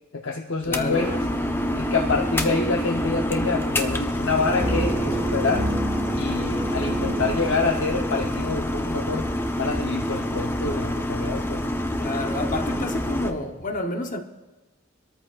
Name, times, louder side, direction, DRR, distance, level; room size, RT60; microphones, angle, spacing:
voice 1, 0.1-1.2 1.7-5.7 6.1-9.3 9.6-11.6, left 3 dB, 75° left, 0.9 m, -27 dB
sound 1, 0.6-13.3, left 1 dB, 10° left, 0.8 m, -27 dB
voice 2, 0.7-1.1 12.0-14.2, left 2 dB, 45° left, 0.9 m, -29 dB
sound 2, 4.5-8.1, right 1 dB, 10° right, 3.8 m, -29 dB
26.0 x 13.5 x 2.5 m
head